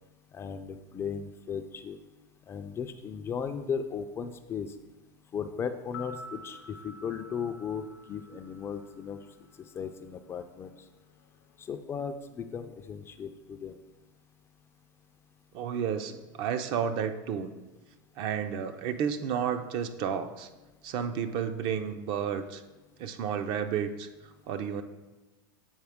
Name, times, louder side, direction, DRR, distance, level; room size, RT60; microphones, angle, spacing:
voice 1, 0.3-2.0 2.5-4.7 5.3-9.2 9.7-10.8 11.6-13.8, left 6 dB, 20° left, 8 dB, 0.3 m, -36 dB
sound 1, 5.8-10.0 10.2-10.3, left 1 dB, 80° left, 0.5 m, -48 dB
voice 2, 15.5-17.5 18.2-20.5 20.8-22.6 23.0-24.1 24.5-24.8, right 8 dB, 45° right, 9 dB, 0.5 m, -31 dB
7.9 x 4.2 x 3.5 m, 1.1 s
supercardioid pair, 130°, 11 cm